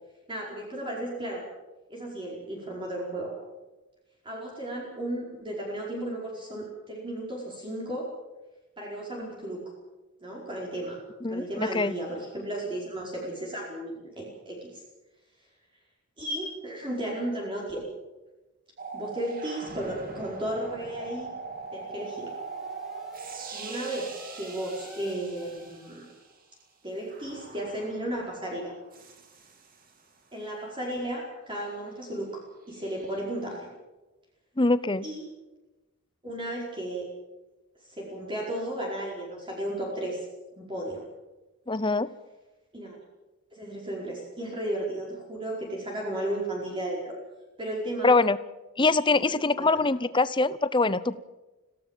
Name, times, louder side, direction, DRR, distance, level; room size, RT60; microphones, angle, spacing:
voice 1, 0.3-1.4 1.9-3.3 4.2-8.1 8.8-9.6 10.2-11.0 11.3-14.8 16.2-17.8 18.9-21.3 21.7-22.3 23.5-26.1 26.8-28.7 30.3-32.4 32.7-33.7 35.0-35.2 36.2-37.0 37.8-40.2 40.6-41.0 42.7-43.0 43.5-47.1 47.6-48.1 49.6-49.7, right 1 dB, 20° right, -3 dB, 4.9 m, -34 dB
voice 2, 11.2-11.9 34.6-35.1 41.7-42.1 48.0-48.4 48.8-51.2, left 3 dB, 20° left, 16 dB, 0.7 m, -24 dB
sound 1, 18.8-26.3 27.1-30.1 32.8-33.2, right 4 dB, 40° right, 3.0 m, -42 dB
sound 2, 21.3-26.4, left 1 dB, ahead, 5.0 m, -52 dB
26.0 x 17.0 x 7.5 m, 1.1 s
head